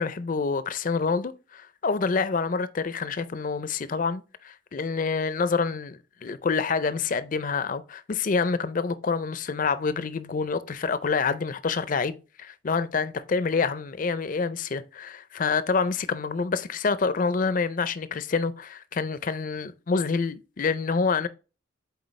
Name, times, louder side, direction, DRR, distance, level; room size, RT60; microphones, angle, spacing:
voice 1, 0.0-21.3, left 4 dB, 45° left, 0.4 m, -27 dB
8.0 x 4.1 x 3.2 m
head